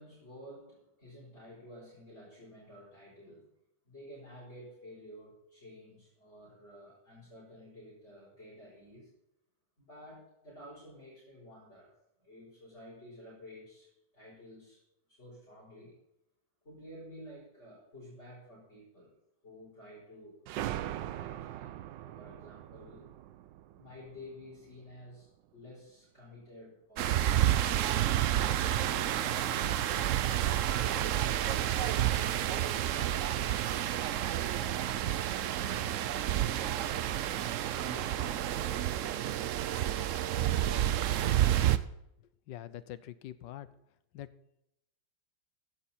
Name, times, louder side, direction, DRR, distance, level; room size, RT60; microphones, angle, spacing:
voice 1, 0.0-3.5 3.8-9.1 9.8-11.9 12.2-14.8 15.1-15.9 16.6-19.1 19.4-23.0 23.8-30.6 31.3-34.8 35.4-37.2 37.8-39.8 40.4-40.8, left 1 dB, 35° left, -8 dB, 5.4 m, -52 dB
sound 1, 20.5-24.9, right 13 dB, 85° right, 1.3 m, -41 dB
sound 2, 27.0-41.8, right 12 dB, 70° right, 0.7 m, -30 dB
voice 2, 42.5-43.7 44.1-44.3, left 12 dB, 85° left, 15 dB, 1.4 m, -44 dB
15.0 x 11.0 x 4.4 m, 0.82 s
omnidirectional pair, 1.9 m